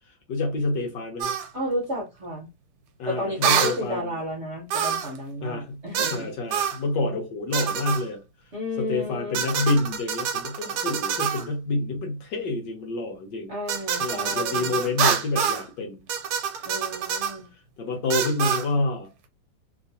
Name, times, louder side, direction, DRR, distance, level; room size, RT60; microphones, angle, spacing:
voice 1, 0.3-1.3 3.0-4.1 5.4-5.8 6.1-8.2 8.8-13.5 14.0-16.1 17.8-19.1, left 2 dB, 65° left, 1.3 m, -28 dB
sound 1, 1.2-1.5 3.4-3.8 4.7-5.2 5.9-6.2 6.5-6.8 7.5-8.0 9.3-11.5 13.7-15.7 16.1-17.4 18.1-18.7, right 7 dB, 90° right, 1.6 m, -26 dB
voice 2, 1.5-2.5 3.1-6.3 8.5-9.4 13.5-14.7 16.6-17.5, left 1 dB, 45° right, 0.9 m, -32 dB
3.3 x 3.0 x 2.7 m
omnidirectional pair, 2.4 m